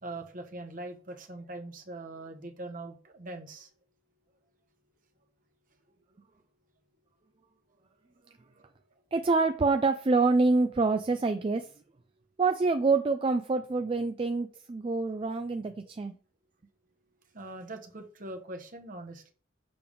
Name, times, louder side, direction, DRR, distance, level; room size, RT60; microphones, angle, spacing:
voice 1, 0.0-3.7 8.6-8.7 17.3-19.3, right 2 dB, 45° right, 5 dB, 1.0 m, -42 dB
voice 2, 9.1-11.7 12.4-16.1, right 3 dB, 25° right, 8 dB, 0.3 m, -26 dB
6.9 x 3.4 x 5.1 m, 0.40 s
head